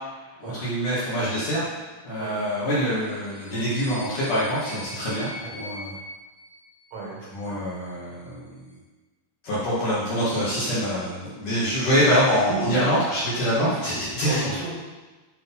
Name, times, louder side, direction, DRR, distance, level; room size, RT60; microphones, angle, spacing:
voice 1, 0.4-1.6 2.0-5.9 7.3-8.6 9.4-14.5, equal, 55° left, -9 dB, 2.5 m, -25 dB
sound 1, 3.0-7.3, left 2 dB, 75° left, 3.1 m, -42 dB
voice 2, 6.9-7.6 12.3-12.9 13.6-14.8, right 3 dB, 80° right, -4 dB, 4.9 m, -33 dB
9.2 x 5.5 x 5.5 m, 1.2 s
omnidirectional pair, 5.8 m